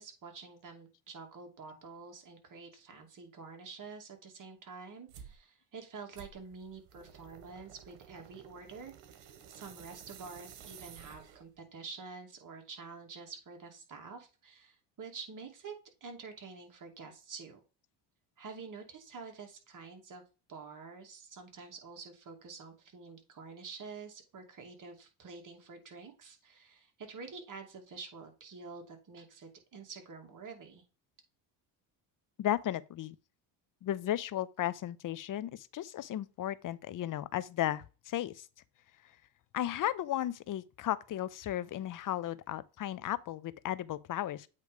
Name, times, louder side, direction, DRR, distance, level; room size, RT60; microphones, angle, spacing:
voice 1, 0.0-15.8 16.0-17.6 18.4-20.2 20.5-30.8, right 4 dB, 45° right, 2.4 m, -48 dB
sound 1, 5.1-5.4 6.1-11.6, right 8 dB, 75° right, 1.6 m, -53 dB
voice 2, 32.4-33.2 33.8-38.5 39.5-44.5, left 12 dB, 45° left, 0.7 m, -35 dB
8.2 x 3.3 x 5.1 m
cardioid pair, 95°, 44 cm